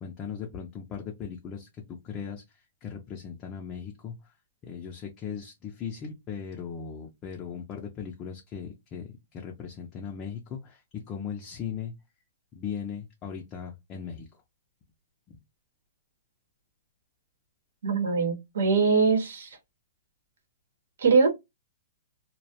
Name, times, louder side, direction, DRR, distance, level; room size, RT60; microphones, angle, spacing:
voice 1, 0.0-2.4 2.8-4.1 4.7-11.9 12.5-14.3, left 7 dB, 25° left, 0.4 m, -38 dB
voice 2, 17.8-19.6 21.0-21.3, right 4 dB, 75° right, 0.8 m, -22 dB
2.2 x 2.0 x 2.8 m
hypercardioid pair, 160°, 0 cm